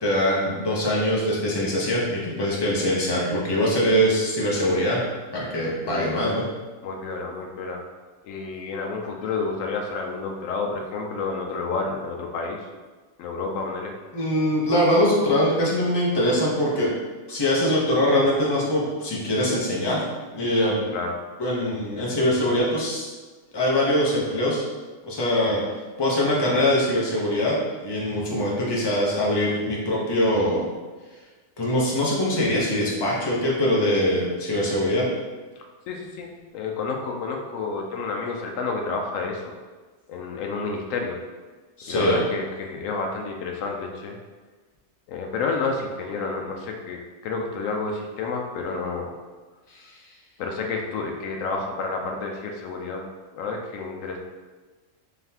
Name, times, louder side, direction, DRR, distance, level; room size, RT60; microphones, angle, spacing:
voice 1, 0.0-5.0 5.3-6.4 14.1-16.9 17.3-20.0 20.3-20.8 21.4-23.1 23.5-24.6 25.0-25.6 26.0-27.6 27.8-30.7 31.6-35.1 41.8-42.2, equal, 25° left, -5 dB, 0.7 m, -22 dB
voice 2, 5.9-6.2 6.8-7.8 8.2-12.6 13.2-14.0 20.9-21.1 35.6-39.5 40.1-41.2 41.9-44.2 45.1-49.1 50.4-53.0 53.4-54.2, left 4 dB, 75° left, 1 dB, 0.9 m, -30 dB
3.9 x 3.4 x 2.8 m, 1.3 s
omnidirectional pair, 1.4 m